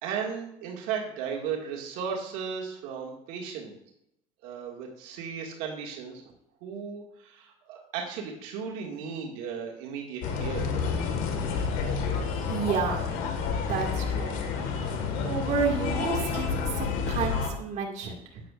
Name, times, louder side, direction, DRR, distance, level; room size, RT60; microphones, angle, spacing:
voice 1, 0.0-3.7 4.4-6.2 6.6-10.7, right 6 dB, 85° right, -1 dB, 2.1 m, -35 dB
sound 1, 10.2-17.5, left 5 dB, 75° left, 1.7 m, -29 dB
voice 2, 12.5-13.1 13.7-14.4 14.8-14.9 15.2-18.4, right 5 dB, 55° right, 0 dB, 2.0 m, -31 dB
12.5 x 9.0 x 2.5 m, 0.80 s
cardioid pair, 120°, 14 cm